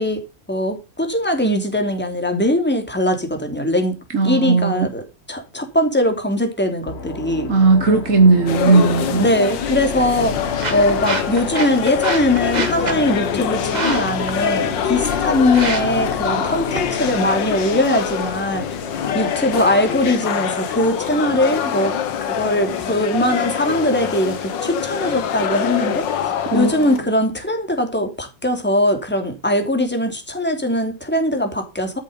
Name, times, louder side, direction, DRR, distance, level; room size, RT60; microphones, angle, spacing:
voice 1, 0.0-4.0 4.2-5.0 5.3-7.5 9.2-18.7 19.1-32.0, left 1 dB, 5° left, 3.1 m, -21 dB
voice 2, 4.1-4.9 7.5-9.2 26.5-27.1, right 3 dB, 45° right, 1.6 m, -16 dB
sound 1, 6.9-20.2, left 5 dB, 40° left, 1.3 m, -31 dB
sound 2, 8.5-27.0, left 8 dB, 80° left, 1.9 m, -25 dB
sound 3, 9.6-19.6, right 3 dB, 25° right, 1.3 m, -31 dB
13.5 x 7.8 x 5.5 m
omnidirectional pair, 2.0 m